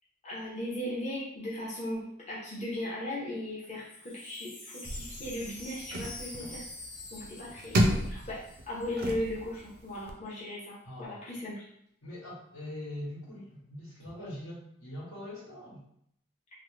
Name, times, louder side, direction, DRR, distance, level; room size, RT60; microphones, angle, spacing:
voice 1, 0.2-6.7 7.1-11.6, left 1 dB, 35° left, -7 dB, 0.7 m, -37 dB
Wind chime, 3.8-9.0 9.2-9.3 9.5-10.0, left 2 dB, 65° left, 1.1 m, -47 dB
sound 1, 4.8-10.1, equal, 45° right, 0.4 m, -33 dB
voice 2, 10.8-11.3 12.0-15.8, left 1 dB, 85° left, -7 dB, 1.3 m, -42 dB
2.9 x 2.0 x 3.1 m, 0.72 s
head